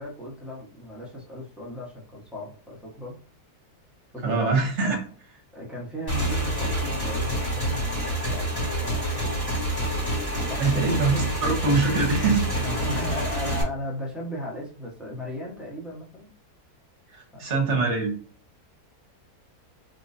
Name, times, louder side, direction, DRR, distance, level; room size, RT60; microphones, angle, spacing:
voice 1, 0.0-3.2 4.1-4.6 5.5-9.6 10.5-10.9 12.6-16.3 17.3-17.5, left 1 dB, ahead, -5 dB, 1.1 m, -36 dB
voice 2, 4.2-5.0 10.6-12.5 17.1-18.1, right 4 dB, 50° right, 1 dB, 1.4 m, -23 dB
Motorcycle / Engine, 6.1-13.6, right 1 dB, 15° left, 1.3 m, -27 dB
3.8 x 2.9 x 2.7 m, 0.43 s
omnidirectional pair, 1.6 m